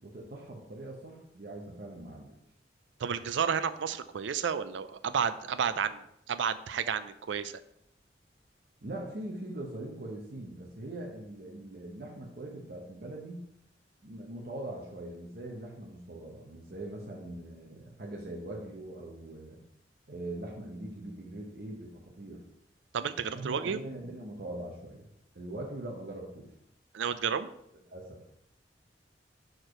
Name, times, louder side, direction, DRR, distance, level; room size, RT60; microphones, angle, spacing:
voice 1, 0.0-2.4 8.8-13.4 14.0-19.6 20.1-22.4 23.3-25.1 25.3-26.5 27.9-28.3, right 1 dB, 55° right, -1 dB, 0.8 m, -42 dB
voice 2, 3.0-6.0 6.3-7.5 22.9-23.8 26.9-27.5, right 7 dB, 80° right, 13 dB, 0.4 m, -31 dB
4.7 x 4.5 x 4.9 m, 0.77 s
head